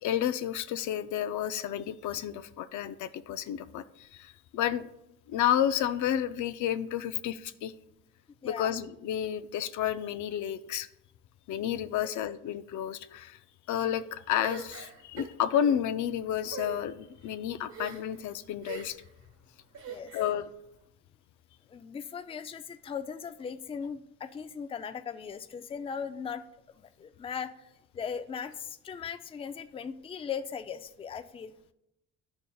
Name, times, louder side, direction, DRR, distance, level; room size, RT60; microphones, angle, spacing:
voice 1, 0.0-4.9 5.3-7.7 8.4-10.9 11.5-13.4 13.7-19.0 20.1-20.5, left 10 dB, 75° left, 12 dB, 0.5 m, -31 dB
voice 2, 8.4-8.8 12.0-12.1 19.9-20.1 21.7-26.4 26.8-31.5, left 6 dB, 20° left, 8 dB, 0.3 m, -38 dB
sound 1, 14.4-15.8 16.4-16.8 17.7-18.2 18.6-19.1 19.7-20.3, right 5 dB, 70° right, 1.4 m, -41 dB
11.0 x 5.3 x 2.3 m, 0.83 s
cardioid pair, 90°, 30 cm